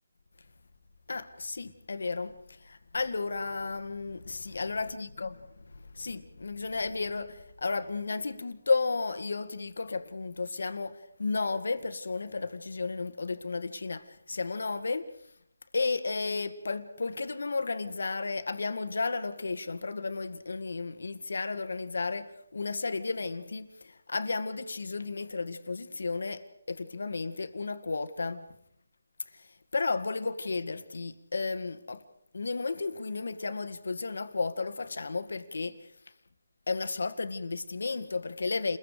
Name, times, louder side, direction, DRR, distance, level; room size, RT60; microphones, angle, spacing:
voice 1, 1.1-5.3 5.7-15.1 15.7-28.5 29.3-29.5 29.7-32.0 32.3-35.8 36.7-38.8, left 3 dB, 70° left, 1.9 m, -33 dB
30.0 x 22.0 x 5.1 m
figure-of-eight pair, 160°, 0 cm